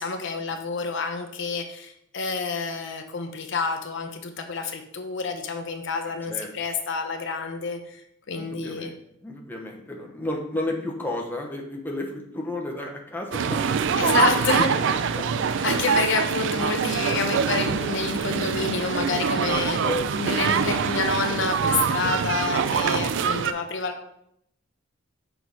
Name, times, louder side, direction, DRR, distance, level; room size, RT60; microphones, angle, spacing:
voice 1, 0.0-8.0 8.3-8.9 14.0-14.7 15.6-19.8 20.2-23.9, left 4 dB, 60° left, 5 dB, 0.7 m, -28 dB
voice 2, 6.0-6.5 8.4-14.2 14.5-15.2 19.8-20.1, left 1 dB, 10° left, 0 dB, 1.0 m, -32 dB
sound 1, 13.3-23.5, right 6 dB, 60° right, 0.4 m, -24 dB
6.2 x 4.6 x 5.4 m, 0.75 s
head